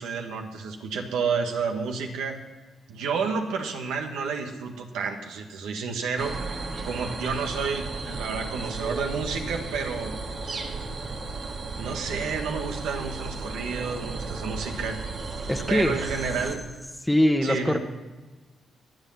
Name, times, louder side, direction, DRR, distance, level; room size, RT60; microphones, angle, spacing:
voice 1, 0.0-2.4 2.9-6.3 6.8-10.1 11.8-15.0 15.7-16.6 17.4-17.8, right 5 dB, 85° right, 3 dB, 1.8 m, -30 dB
sound 1, 6.2-16.6, right 3 dB, 60° right, 2.0 m, -34 dB
voice 2, 15.5-15.9 17.0-17.8, equal, 5° left, 4 dB, 1.2 m, -22 dB
22.0 x 8.1 x 5.8 m, 1.3 s
supercardioid pair, 60°, 0 cm